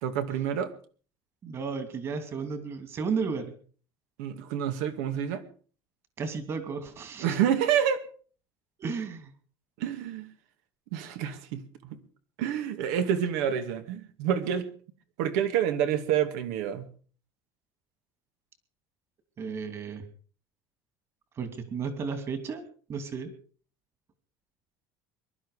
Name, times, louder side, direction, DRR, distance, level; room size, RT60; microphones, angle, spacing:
voice 1, 0.0-0.7 4.2-5.4 7.2-8.0 9.8-10.3 10.9-12.0 12.4-14.7 15.2-16.9, right 9 dB, 85° right, 2.3 m, -28 dB
voice 2, 1.4-3.5 6.2-7.4 8.8-9.3 19.4-20.0 21.4-22.6 22.9-23.3, right 5 dB, 30° right, 2.7 m, -33 dB
22.5 x 12.0 x 5.0 m
cardioid pair, 165°, 9 cm